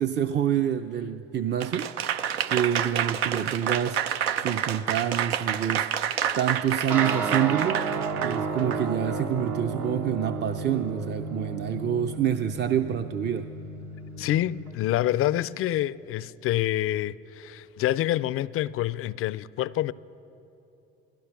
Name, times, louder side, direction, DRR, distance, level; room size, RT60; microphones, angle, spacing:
voice 1, 0.0-1.9 2.5-4.0 4.4-5.9 6.4-7.8 8.2-13.5, right 9 dB, 35° right, 0.5 m, -27 dB
Applause / Crowd, 1.6-8.8, right 9 dB, 90° right, 0.5 m, -28 dB
sound 1, 6.9-14.7, right 4 dB, 70° right, 1.5 m, -32 dB
voice 2, 14.2-19.9, left 13 dB, 50° left, 0.4 m, -27 dB
16.0 x 13.0 x 5.9 m
hypercardioid pair, 65°, 30 cm